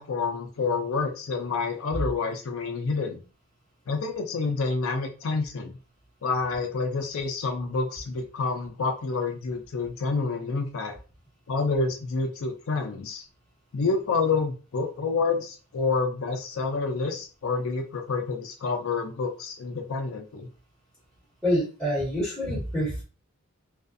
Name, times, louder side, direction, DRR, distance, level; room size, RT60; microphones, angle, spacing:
voice 1, 0.0-3.2 3.9-5.8 6.2-11.0 11.5-13.2 13.7-20.5, left 4 dB, 70° left, 3 dB, 0.4 m, -28 dB
voice 2, 21.4-23.0, equal, 5° left, -9 dB, 1.2 m, -26 dB
2.4 x 2.3 x 2.5 m, 0.34 s
head